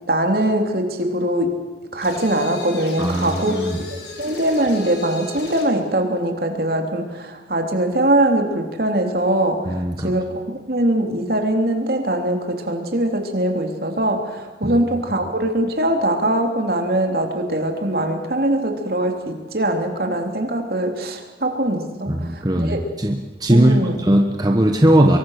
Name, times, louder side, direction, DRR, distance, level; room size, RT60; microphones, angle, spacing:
voice 1, 0.1-1.5 1.9-3.5 3.9-9.8 10.0-10.4 10.7-22.8 23.5-24.0, right 1 dB, 55° right, 3 dB, 3.3 m, -22 dB
sound 1, 2.0-5.8, left 3 dB, 80° left, 5.1 m, -36 dB
voice 2, 3.0-3.8 9.6-10.1 14.6-14.8 22.1-23.7 24.0-25.2, right 1 dB, 20° right, 3 dB, 1.3 m, -18 dB
24.5 x 23.0 x 6.6 m, 1.3 s
head